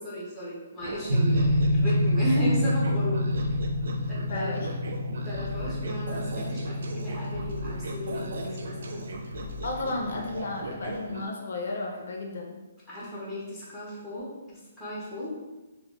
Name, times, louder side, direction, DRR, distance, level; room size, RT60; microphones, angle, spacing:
voice 1, 0.0-3.2 4.1-4.6 5.2-9.0 12.9-15.3, equal, ahead, -8 dB, 0.5 m, -35 dB
sound 1, 0.8-11.3, right 2 dB, 60° right, 0.3 m, -39 dB
sound 2, 1.1-10.8, left 1 dB, 90° right, 0.7 m, -28 dB
voice 2, 4.3-4.7 9.6-12.6, left 2 dB, 55° left, 1 dB, 0.4 m, -33 dB
2.1 x 2.0 x 3.6 m, 1.1 s
hypercardioid pair, 180°, 0 cm